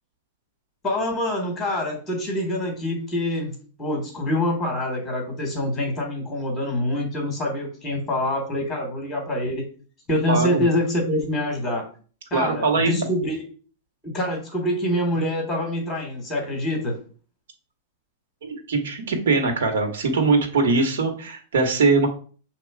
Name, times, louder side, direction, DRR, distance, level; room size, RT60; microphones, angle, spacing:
voice 1, 0.8-9.6 10.1-11.9 12.3-13.4 14.0-17.0, left 1 dB, 5° left, 1 dB, 1.2 m, -25 dB
voice 2, 10.3-10.6 12.3-13.0 18.4-22.1, right 3 dB, 80° right, 4 dB, 1.8 m, -21 dB
7.0 x 3.0 x 4.7 m, 0.40 s
supercardioid pair, 175°, 0 cm